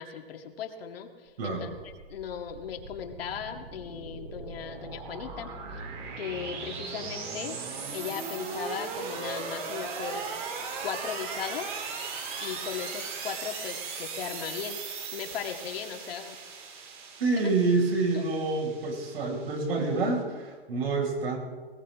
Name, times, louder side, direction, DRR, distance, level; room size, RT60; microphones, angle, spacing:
voice 1, 0.0-1.7 2.1-5.9 6.2-7.6 7.9-10.2 10.8-11.9 12.4-14.8 15.1-16.4 17.4-17.5 18.1-18.2, left 8 dB, 65° left, 3 dB, 2.0 m, -37 dB
voice 2, 1.4-1.7 17.2-21.4, right 3 dB, 65° right, 0 dB, 5.6 m, -27 dB
sound 1, 1.9-20.2, right 5 dB, 50° right, 3.4 m, -38 dB
19.5 x 18.0 x 3.7 m, 1.4 s
hypercardioid pair, 150°, 32 cm